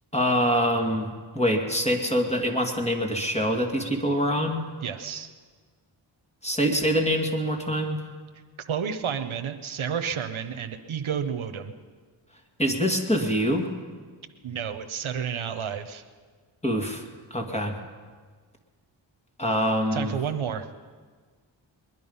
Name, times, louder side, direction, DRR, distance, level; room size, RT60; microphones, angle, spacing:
voice 1, 0.1-4.6 6.4-8.0 12.6-13.7 16.6-17.0 17.3-17.8 19.4-20.1, equal, 15° left, 2 dB, 2.4 m, -25 dB
voice 2, 4.8-5.3 8.7-11.7 14.4-16.0 19.9-20.7, right 7 dB, 75° right, 8 dB, 0.9 m, -31 dB
21.5 x 11.0 x 5.5 m, 1.5 s
cardioid pair, 45°, 49 cm